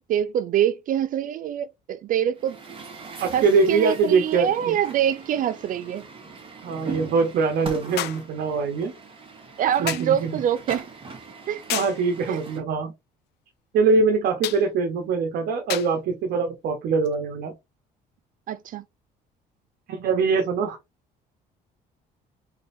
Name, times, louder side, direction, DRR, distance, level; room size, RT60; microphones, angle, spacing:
voice 1, 0.1-2.6 3.3-3.4 3.7-6.1 9.6-10.9 11.5-11.6 12.3-12.4 18.5-18.8, right 10 dB, 55° right, 0.4 m, -25 dB
Truck, 2.4-12.6, right 4 dB, 30° right, 1.7 m, -40 dB
voice 2, 3.2-4.8 6.6-8.9 9.8-10.4 11.7-12.9 13.7-17.5 19.9-20.8, right 4 dB, 70° right, 1.1 m, -23 dB
sound 1, 4.2-4.3 8.0-8.3 9.9-10.2 11.7-12.0 14.4-14.7 15.7-16.0 17.0-17.2, left 14 dB, 80° left, 0.6 m, -30 dB
4.1 x 3.9 x 2.6 m
cardioid pair, 110°, 17 cm